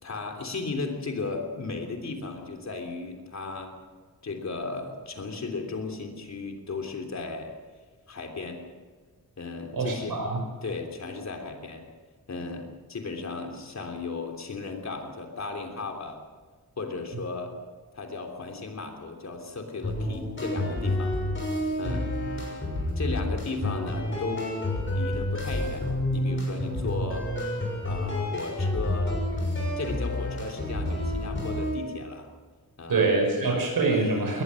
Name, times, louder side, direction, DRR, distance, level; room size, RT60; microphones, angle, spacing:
voice 1, 0.0-3.7 4.2-7.5 8.1-8.6 9.4-10.2 10.6-11.8 12.3-16.2 16.8-17.5 17.9-21.1 21.8-22.1 22.9-27.3 27.8-29.1 29.8-32.3 32.8-33.1, left 3 dB, 50° left, 3 dB, 3.3 m, -35 dB
voice 2, 9.7-10.4 21.8-22.0 32.9-34.4, right 3 dB, 80° right, 0 dB, 5.5 m, -25 dB
sound 1, 19.8-31.8, left 1 dB, 35° left, 6.8 m, -29 dB
21.5 x 19.5 x 6.4 m, 1.5 s
wide cardioid pair, 175°, 35 cm